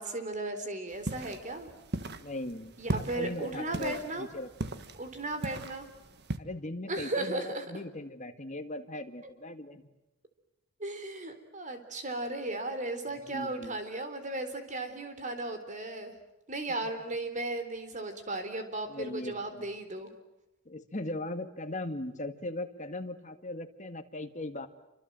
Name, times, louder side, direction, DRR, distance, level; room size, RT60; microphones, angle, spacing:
voice 1, 0.0-1.7 2.8-4.3 5.0-5.9 6.9-7.6 10.8-16.1 16.5-20.1, right 2 dB, 35° right, 8 dB, 3.9 m, -36 dB
sound 1, 0.9-6.4, right 2 dB, 55° right, 1.6 m, -38 dB
voice 2, 2.2-4.8 6.4-9.9 13.1-13.8 18.9-19.7 20.7-24.7, left 1 dB, 35° left, 6 dB, 2.0 m, -39 dB
28.5 x 25.5 x 7.7 m, 0.94 s
head